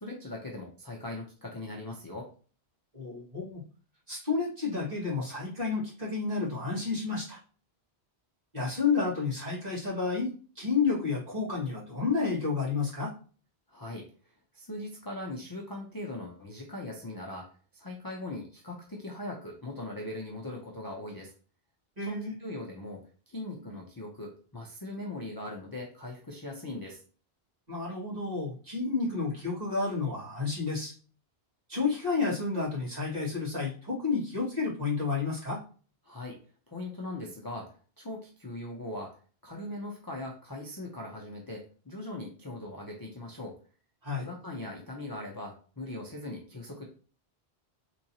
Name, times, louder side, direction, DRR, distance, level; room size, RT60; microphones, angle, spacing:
voice 1, 0.0-2.3 13.7-14.1 14.5-17.5 17.7-21.3 22.0-27.0 36.0-36.4 36.7-39.2 39.4-43.6 44.2-46.8, left 1 dB, 25° left, -2 dB, 0.5 m, -40 dB
voice 2, 2.9-3.6 4.1-7.4 8.5-13.1 22.0-22.3 27.7-30.9 31.7-35.6 44.0-44.3, left 4 dB, 40° right, -8 dB, 1.9 m, -30 dB
3.7 x 2.9 x 2.7 m, 0.40 s
omnidirectional pair, 1.1 m